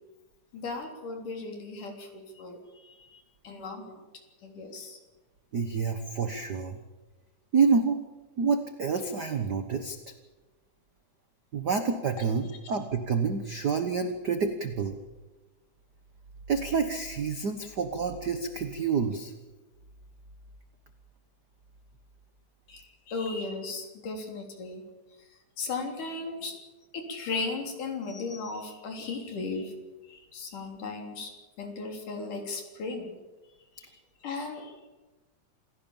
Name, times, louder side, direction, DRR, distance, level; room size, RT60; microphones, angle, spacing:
voice 1, 0.5-4.0 4.4-5.0 22.7-24.8 25.2-26.5 26.9-29.7 30.0-33.2 33.8-34.9, left 3 dB, 85° left, 3 dB, 5.0 m, -37 dB
voice 2, 5.5-6.8 7.5-8.0 8.4-10.0 11.5-15.0 16.5-19.3, right 5 dB, 50° right, 8 dB, 1.3 m, -28 dB
27.0 x 17.0 x 7.3 m, 1.2 s
omnidirectional pair, 3.6 m